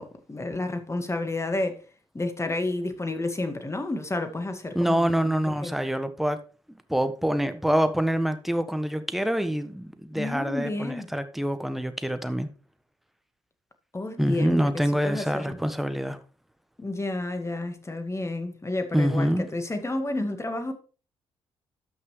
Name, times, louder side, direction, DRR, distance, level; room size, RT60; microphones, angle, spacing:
voice 1, 0.0-1.8 2.1-5.7 10.1-11.1 13.9-15.6 16.8-20.7, left 2 dB, 20° left, 2.0 m, -31 dB
voice 2, 4.7-6.4 6.9-12.5 14.2-16.2 18.9-19.4, equal, ahead, 1.3 m, -26 dB
12.5 x 6.1 x 3.3 m
hypercardioid pair, 50°, 13 cm